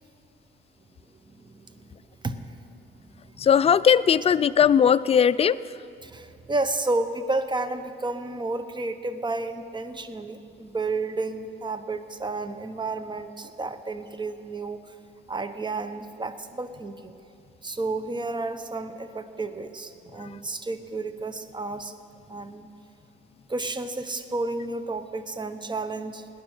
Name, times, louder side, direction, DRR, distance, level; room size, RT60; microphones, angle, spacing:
voice 1, 1.1-1.9 2.2-3.4 6.0-14.9 15.3-17.1 17.6-21.9 22.3-22.7 23.5-26.3, right 2 dB, 25° right, 10 dB, 0.9 m, -31 dB
voice 2, 3.4-5.6, left 8 dB, 30° left, 15 dB, 0.4 m, -19 dB
18.0 x 10.5 x 6.5 m, 2.8 s
cardioid pair, 90°, 20 cm